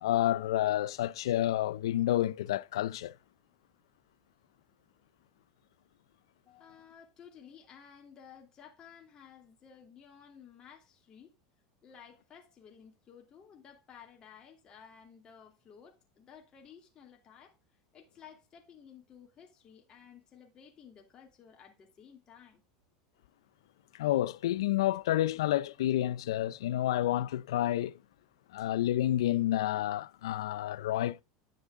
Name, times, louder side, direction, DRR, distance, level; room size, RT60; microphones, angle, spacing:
voice 1, 0.0-3.1 24.0-28.0 28.5-31.2, left 13 dB, 85° left, 0.5 m, -29 dB
voice 2, 6.4-11.3 11.8-17.6 17.9-22.6, left 7 dB, 35° left, 2.6 m, -55 dB
10.0 x 6.2 x 3.7 m
supercardioid pair, 110°, 3 cm